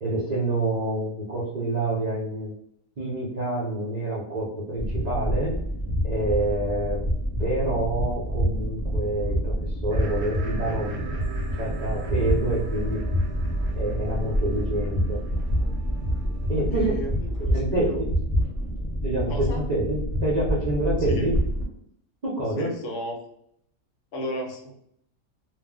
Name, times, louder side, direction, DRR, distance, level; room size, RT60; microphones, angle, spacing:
voice 1, 0.0-2.5 3.0-5.5 6.0-7.0 7.4-11.1 11.6-13.1 13.7-15.2 16.5-16.9 17.4-18.1 19.0-21.4 22.2-22.7, right 1 dB, 55° right, -7 dB, 0.4 m, -27 dB
sound 1, 4.7-21.6, equal, 25° left, 0.9 m, -27 dB
sound 2, 9.9-17.0, right 4 dB, 70° right, 0.9 m, -39 dB
voice 2, 16.7-18.0 19.3-19.6 21.1-21.3 22.6-23.2 24.1-24.8, equal, 65° left, 2 dB, 0.9 m, -34 dB
2.5 x 2.0 x 3.6 m, 0.70 s
omnidirectional pair, 1.5 m